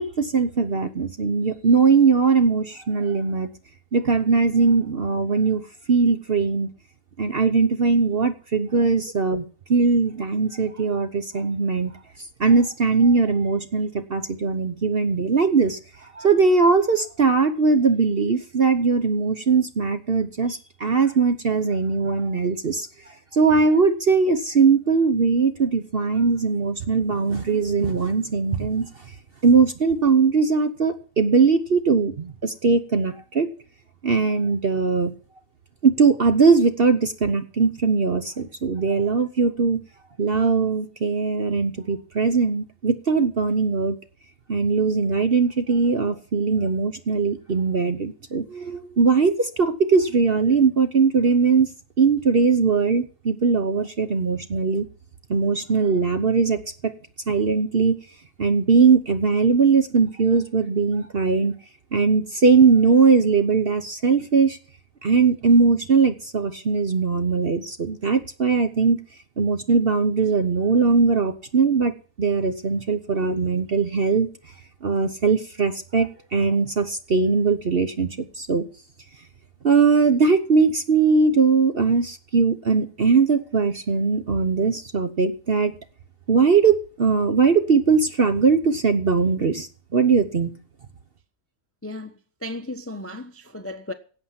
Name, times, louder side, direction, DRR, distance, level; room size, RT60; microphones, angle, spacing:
voice 1, 0.0-3.5 3.9-5.6 5.9-6.7 7.2-9.4 9.7-11.9 12.4-28.9 29.4-33.5 34.0-35.1 35.8-39.8 40.2-44.0 44.5-51.7 52.0-54.8 55.3-56.9 57.3-58.0 58.4-61.5 61.9-64.6 65.0-69.0 69.4-74.3 74.8-78.1 78.3-78.6 79.6-85.7 86.3-90.5, right 4 dB, 45° right, 0.9 m, -20 dB
voice 2, 91.8-93.9, left 1 dB, 15° left, 0.6 m, -35 dB
17.5 x 7.9 x 5.8 m
omnidirectional pair, 1.8 m